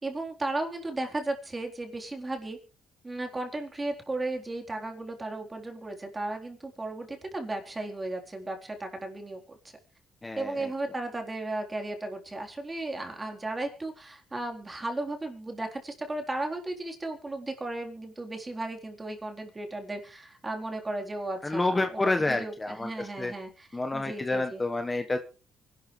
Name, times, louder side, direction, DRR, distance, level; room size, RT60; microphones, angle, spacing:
voice 1, 0.0-2.6 3.0-9.6 10.4-24.6, right 2 dB, 20° right, 3 dB, 4.0 m, -35 dB
voice 2, 10.2-10.7 21.4-23.3 23.7-25.2, left 2 dB, 20° left, 6 dB, 1.4 m, -29 dB
24.5 x 12.0 x 3.3 m, 0.35 s
cardioid pair, 90°, 0 cm